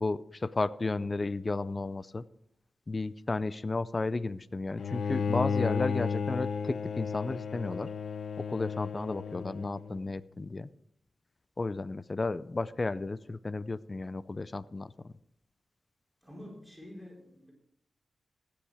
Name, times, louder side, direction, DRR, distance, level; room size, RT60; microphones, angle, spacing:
voice 1, 0.0-2.2 2.9-7.9 8.5-10.7 11.6-15.1, left 3 dB, 30° left, 16 dB, 0.4 m, -33 dB
Bowed string instrument, 4.8-10.0, left 6 dB, 75° left, 0.6 m, -33 dB
voice 2, 16.2-17.5, left 1 dB, ahead, -2 dB, 4.4 m, -47 dB
14.5 x 10.0 x 4.9 m, 0.76 s
wide cardioid pair, 100°, 0 cm